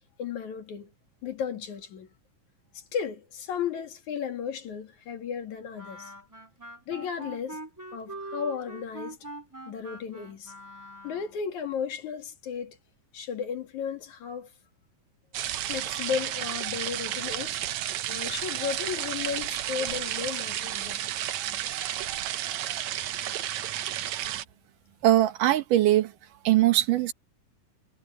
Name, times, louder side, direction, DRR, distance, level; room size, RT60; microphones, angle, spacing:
voice 1, 0.2-0.9 1.2-2.1 2.8-6.1 6.9-7.6 7.9-9.2 9.7-10.5 11.0-12.8 13.1-14.5 15.6-17.6 18.1-21.0, left 7 dB, 65° left, 3.5 m, -34 dB
Wind instrument woodwind instrument, 5.8-11.4, right 1 dB, 5° right, 3.2 m, -43 dB
sound 1, 15.3-24.4, right 12 dB, 70° right, 2.1 m, -32 dB
voice 2, 25.0-26.1 26.4-27.1, right 14 dB, 85° right, 2.9 m, -21 dB
omnidirectional pair, 3.7 m